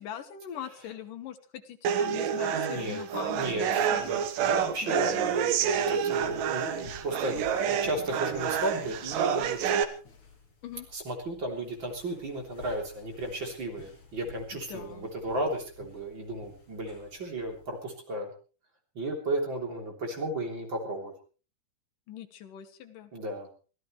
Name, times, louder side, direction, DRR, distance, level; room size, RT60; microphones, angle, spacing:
voice 1, 0.0-4.0 4.8-5.3 10.6-10.9 14.7-15.1 22.1-23.1, left 10 dB, 80° left, 9 dB, 3.0 m, -42 dB
sound 1, 1.9-9.8, right 8 dB, 90° right, 2.9 m, -28 dB
voice 2, 2.5-3.0 3.3-9.8 10.9-18.3 19.0-21.1 23.1-23.5, right 1 dB, 35° right, 2 dB, 3.9 m, -34 dB
sound 2, 3.1-17.8, left 3 dB, 60° left, 6.3 m, -53 dB
24.5 x 16.0 x 3.2 m, 0.37 s
omnidirectional pair, 3.8 m